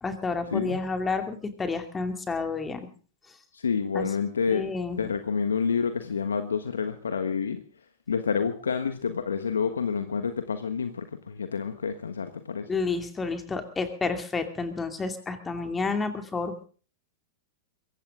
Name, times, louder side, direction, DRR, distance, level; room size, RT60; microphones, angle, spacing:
voice 1, 0.0-2.9 3.9-4.1 4.5-5.0 12.7-16.7, left 4 dB, 15° left, 6 dB, 2.5 m, -30 dB
voice 2, 3.5-4.7 5.0-7.6 8.1-12.7, left 6 dB, 80° left, 9 dB, 1.2 m, -28 dB
22.5 x 16.5 x 3.7 m, 0.39 s
hypercardioid pair, 100°, 0 cm